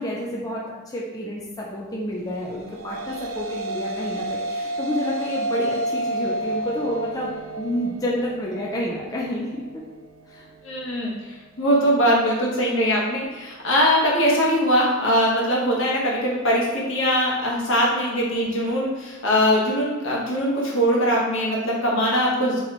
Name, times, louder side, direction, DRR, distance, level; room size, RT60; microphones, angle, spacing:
voice 1, 0.0-9.6 10.3-10.5, left 1 dB, 20° left, -4 dB, 0.4 m, -29 dB
sound 1, 2.5-11.0, right 1 dB, 65° right, 0.4 m, -31 dB
voice 2, 10.6-22.6, equal, 65° left, -4 dB, 1.0 m, -21 dB
4.0 x 3.0 x 3.2 m, 1.2 s
head